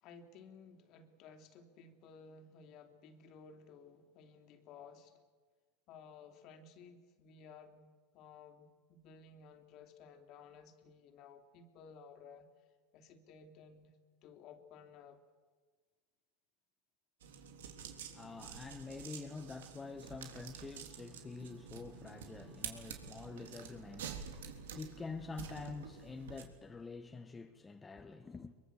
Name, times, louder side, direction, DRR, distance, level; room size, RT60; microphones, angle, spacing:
voice 1, 0.0-5.2 5.9-12.5 12.9-14.0 14.2-15.2, left 5 dB, 50° left, 3.2 m, -56 dB
sound 1, 17.2-26.4, right 7 dB, 90° right, 3.5 m, -49 dB
voice 2, 18.1-28.5, left 4 dB, 15° left, 1.5 m, -47 dB
23.5 x 23.0 x 8.2 m
supercardioid pair, 110°, 0 cm